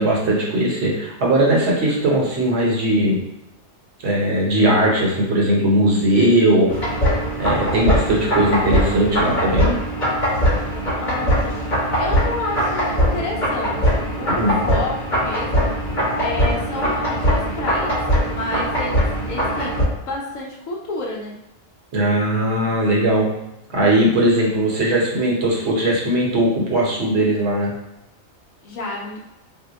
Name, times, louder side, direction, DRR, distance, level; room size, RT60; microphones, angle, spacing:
voice 1, 0.0-3.2 4.0-6.7 7.4-9.7 14.3-14.5 21.9-23.3 23.7-27.7, right 1 dB, 60° right, -3 dB, 1.0 m, -19 dB
sound 1, 6.7-19.8, equal, 40° left, 1.1 m, -21 dB
voice 2, 11.0-11.6 11.9-21.4 28.6-29.2, left 2 dB, 80° left, -2 dB, 1.0 m, -30 dB
2.7 x 2.1 x 3.9 m, 0.90 s
omnidirectional pair, 1.4 m